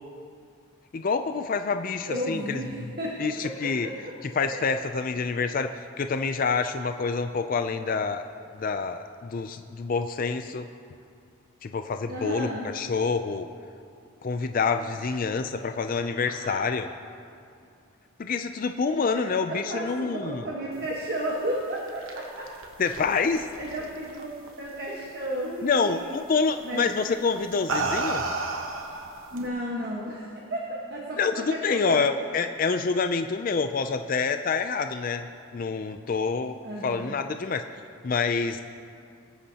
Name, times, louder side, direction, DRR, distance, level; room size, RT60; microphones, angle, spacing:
voice 1, 0.9-2.6 3.2-3.9 4.4-8.2 8.6-10.7 11.6-13.5 14.2-16.9 18.2-20.4 22.8-23.5 25.6-28.2 31.2-35.3 35.5-36.6 36.8-37.6 38.0-38.6, left 4 dB, 40° left, 8 dB, 0.4 m, -27 dB
voice 2, 2.1-4.1 4.5-4.7 12.1-12.7 15.0-15.1 15.5-15.6 16.2-16.8 19.1-22.5 23.6-26.1 26.6-26.8 29.3-32.1 36.6-37.2, right 1 dB, 45° right, -4 dB, 1.4 m, -34 dB
sound 1, 21.6-24.5 24.8-25.3 26.5-26.7 27.4-29.5, right 3 dB, 65° right, 1.0 m, -32 dB
23.5 x 8.3 x 2.9 m, 2.4 s
head